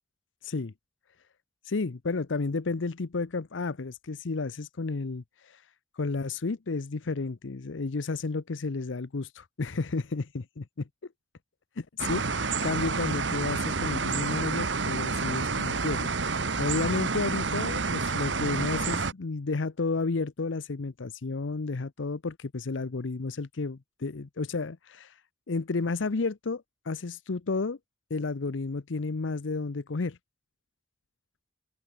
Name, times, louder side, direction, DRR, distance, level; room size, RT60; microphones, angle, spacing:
voice 1, 0.4-0.7 1.7-5.6 6.0-10.6 11.8-25.1 25.5-27.8 28.1-30.2, left 3 dB, 80° left, 0.7 m, -32 dB
sound 1, 12.0-19.1, right 4 dB, 70° right, 1.5 m, -29 dB
open air
head